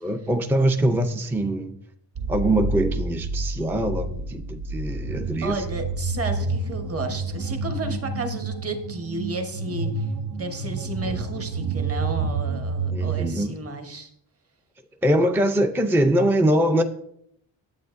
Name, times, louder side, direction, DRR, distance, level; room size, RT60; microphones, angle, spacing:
voice 1, 0.0-1.8 2.3-5.6 12.9-13.6 15.0-16.8, right 1 dB, 5° right, 0.5 m, -23 dB
sound 1, 2.2-13.3, right 3 dB, 55° right, 0.7 m, -29 dB
voice 2, 5.4-14.1, right 2 dB, 30° right, 1.1 m, -32 dB
9.5 x 8.1 x 2.6 m
cardioid pair, 110°, 47 cm